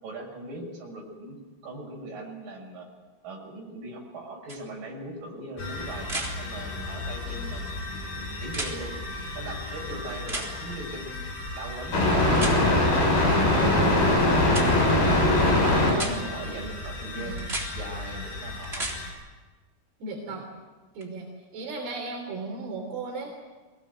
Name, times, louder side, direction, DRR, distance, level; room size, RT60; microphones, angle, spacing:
voice 1, 0.0-1.4 1.6-2.9 3.2-7.6 7.9-8.9 9.3-11.1 11.6-12.2 13.0-17.4 17.7-18.9 20.2-20.4, right 2 dB, 60° right, 0 dB, 7.5 m, -40 dB
CD case falling, 4.5-4.6 6.0-6.3 8.5-8.7 10.3-10.5 12.3-12.6 14.5-14.7 15.9-16.1 17.4-17.7 18.6-19.0 21.0-21.1, right 2 dB, 15° right, 3.7 m, -32 dB
sound 1, 5.6-19.1, left 1 dB, 75° left, 9.0 m, -25 dB
voice 2, 13.4-13.7 15.8-16.4 17.1-17.5 20.0-20.4 21.0-21.3 21.5-23.3, right 3 dB, 85° right, 1 dB, 5.3 m, -36 dB
24.5 x 19.5 x 9.4 m, 1.3 s
omnidirectional pair, 4.5 m